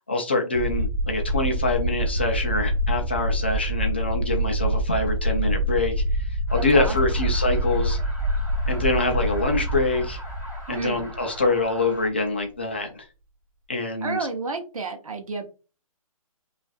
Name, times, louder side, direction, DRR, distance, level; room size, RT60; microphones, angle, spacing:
voice 1, 0.1-8.0 8.7-10.2 10.7-12.9 13.7-14.2, left 3 dB, 20° left, 0.4 m, -25 dB
sound 1, 0.5-12.1, right 1 dB, 35° right, 1.4 m, -26 dB
sound 2, 6.5-12.1, equal, 5° right, 1.0 m, -42 dB
voice 2, 6.5-7.0 10.7-11.1 14.0-15.5, right 4 dB, 70° right, 0.9 m, -31 dB
5.3 x 2.5 x 2.3 m
hypercardioid pair, 180°, 19 cm